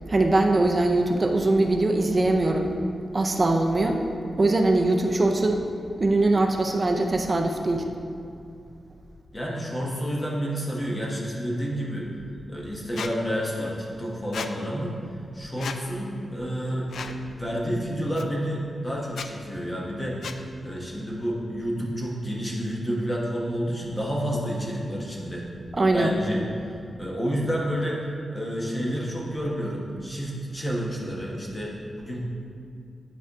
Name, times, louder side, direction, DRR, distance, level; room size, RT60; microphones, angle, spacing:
voice 1, 0.1-2.7 3.1-4.0 4.4-5.7 6.0-7.9 25.7-26.1, right 2 dB, 25° right, 3 dB, 0.5 m, -22 dB
voice 2, 9.3-12.1 12.5-14.9 15.3-16.9 17.1-20.2 20.6-25.5 25.9-28.1 28.3-32.3, equal, 15° left, -3 dB, 1.2 m, -29 dB
Squeak, 13.0-13.1 14.3-14.5 15.6-15.8 16.9-17.2 18.2-18.3 19.1-19.3 20.2-20.4, left 5 dB, 70° left, 0.3 m, -34 dB
10.5 x 4.7 x 3.6 m, 2.5 s
wide cardioid pair, 175°, 0 cm